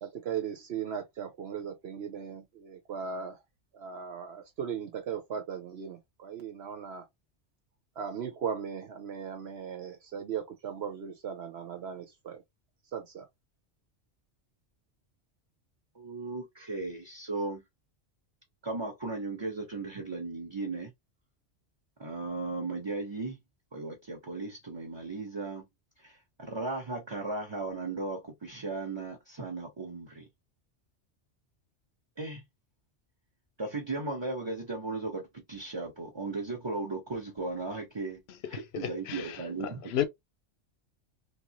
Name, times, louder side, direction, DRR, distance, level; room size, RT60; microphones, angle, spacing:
voice 1, 0.0-3.4 3.7-7.0 8.0-12.4 12.9-13.2, right 7 dB, 65° right, 0.9 m, -37 dB
voice 2, 15.9-17.6 18.6-20.9 22.0-23.4 23.7-25.6 26.0-30.3 32.2-32.4 33.6-38.2 38.5-39.9, right 3 dB, 25° right, 0.9 m, -36 dB
voice 3, 38.7-40.0, left 10 dB, 65° left, 0.9 m, -33 dB
3.5 x 2.6 x 2.9 m
omnidirectional pair, 1.2 m